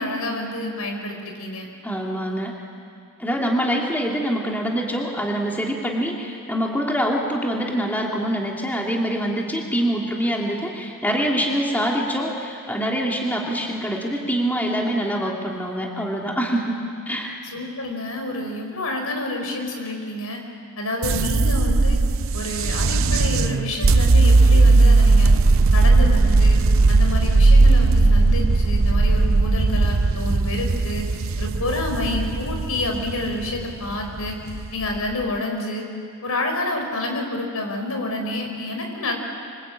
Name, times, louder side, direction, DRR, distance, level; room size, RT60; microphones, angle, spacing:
voice 1, 0.0-1.7 17.5-20.4 20.8-22.0 22.3-25.3 25.7-26.6 26.9-31.0 31.4-34.4 34.7-35.8 36.2-39.1, left 2 dB, 75° left, 3 dB, 5.0 m, -28 dB
voice 2, 1.8-2.6 3.2-17.4, equal, 10° left, -1 dB, 2.5 m, -25 dB
sound 1, 21.0-35.2, right 3 dB, 60° right, 0.6 m, -17 dB
26.0 x 25.5 x 8.8 m, 2.4 s
head